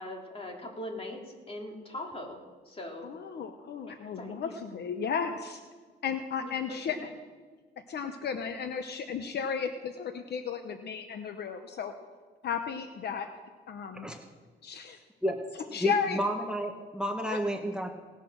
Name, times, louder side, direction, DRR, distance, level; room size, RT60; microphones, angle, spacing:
voice 1, 0.0-2.4 2.6-3.1 3.9-4.6 6.4-7.1, left 1 dB, 30° left, 0 dB, 3.0 m, -41 dB
voice 2, 3.0-5.6 6.0-7.0 7.9-11.9 12.4-13.3 13.7-14.1 14.6-15.0 15.5-16.2 17.3-17.4, left 6 dB, 60° left, 7 dB, 0.9 m, -34 dB
voice 3, 15.8-17.9, right 1 dB, 5° right, 4 dB, 1.2 m, -31 dB
18.5 x 6.8 x 6.2 m, 1.4 s
cardioid pair, 95°, 20 cm